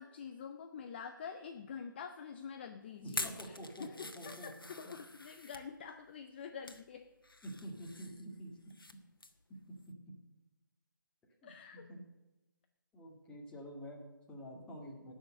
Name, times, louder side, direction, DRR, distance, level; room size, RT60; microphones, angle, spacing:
voice 1, 0.0-3.9 4.3-7.1 11.4-11.9, left 6 dB, 30° left, 7 dB, 0.6 m, -47 dB
sound 1, 3.0-5.7 6.3-6.8 7.2-8.9 9.2-9.4 9.8-9.9, left 2 dB, 85° left, 1.3 m, -45 dB
voice 2, 3.0-4.7 5.0-5.1 7.4-8.5 9.9-10.0 11.4-12.0 12.9-15.1, equal, 10° left, -2 dB, 2.1 m, -48 dB
18.0 x 6.4 x 6.7 m, 1.1 s
figure-of-eight pair, 150°, 11 cm